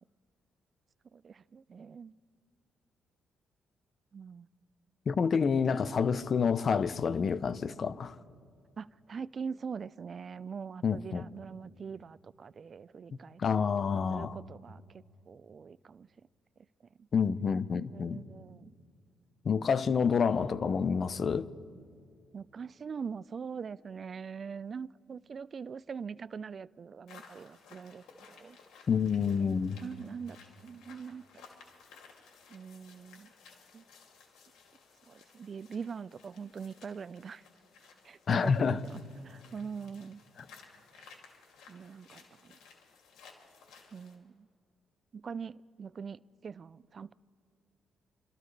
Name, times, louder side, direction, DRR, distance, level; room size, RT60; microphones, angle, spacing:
voice 1, 1.1-2.1 4.1-4.5 8.8-13.7 14.1-16.1 17.9-18.7 22.3-28.6 29.4-30.4 30.6-31.2 32.5-33.3 33.7-33.8 35.1-37.4 38.0-40.2 41.0-41.1 41.7-42.6 43.9-44.5 45.1-47.1, right 6 dB, 45° right, 0.3 m, -43 dB
voice 2, 5.1-8.2 10.8-11.2 13.4-14.4 17.1-18.2 19.4-21.5 28.9-29.8 38.3-38.8 40.4-40.5, left 6 dB, 45° left, 0.6 m, -28 dB
sound 1, 27.1-44.2, left 5 dB, 80° left, 2.5 m, -57 dB
28.0 x 13.5 x 3.3 m
cardioid pair, 90°, 0 cm